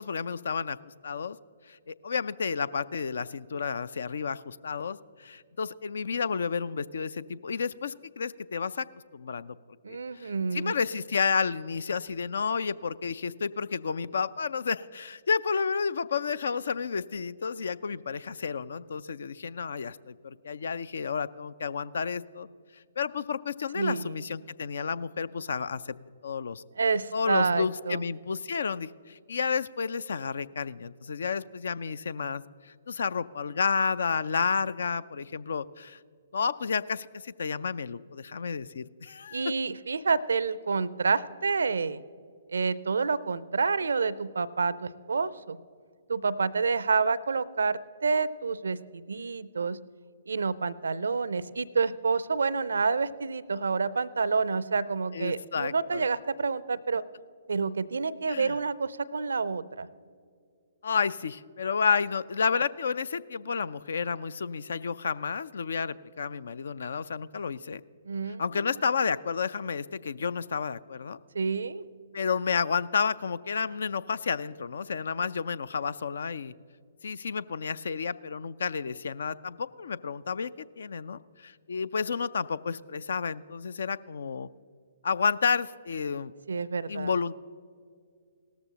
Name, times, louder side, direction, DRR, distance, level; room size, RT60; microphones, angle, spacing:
voice 1, 0.0-1.4 1.7-8.9 9.1-9.6 9.9-22.5 23.0-26.0 26.2-26.6 27.1-36.0 36.3-39.5 55.1-56.0 58.3-58.6 60.8-67.8 68.4-71.2 72.1-76.5 77.0-84.5 85.0-86.3 86.9-87.3, left 5 dB, 60° left, 19 dB, 0.4 m, -31 dB
voice 2, 9.8-10.7 23.7-24.2 26.8-28.1 39.3-42.0 42.5-45.6 46.1-49.8 50.3-57.0 57.5-59.9 68.1-68.7 71.3-71.8 86.5-87.1, right 4 dB, 70° right, 18 dB, 0.4 m, -28 dB
17.5 x 13.5 x 2.8 m, 2.2 s
figure-of-eight pair, 125°, 0 cm